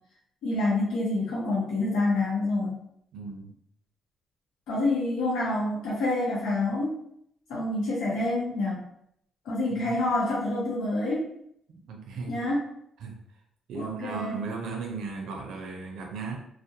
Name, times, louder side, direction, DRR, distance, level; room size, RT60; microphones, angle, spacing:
voice 1, 0.4-2.8 4.7-7.0 7.5-8.8 9.4-11.3 12.3-12.6 13.7-14.4, left 2 dB, 85° left, -6 dB, 0.7 m, -27 dB
voice 2, 3.1-3.5 9.7-10.0 11.7-12.4 13.0-13.2 13.7-16.4, right 4 dB, 85° right, 1 dB, 0.4 m, -36 dB
2.2 x 2.1 x 2.7 m, 0.70 s
cardioid pair, 90°, 0 cm